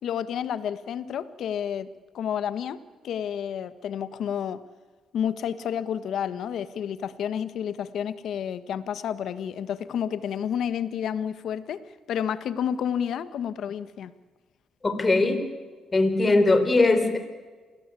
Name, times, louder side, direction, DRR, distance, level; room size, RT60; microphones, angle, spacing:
voice 1, 0.0-1.9 2.1-4.6 5.1-14.1, left 8 dB, 70° left, 13 dB, 1.5 m, -30 dB
voice 2, 14.8-15.4 15.9-17.2, left 2 dB, 25° left, 8 dB, 4.0 m, -20 dB
28.0 x 19.5 x 8.5 m, 1.4 s
cardioid pair, 90°, 0 cm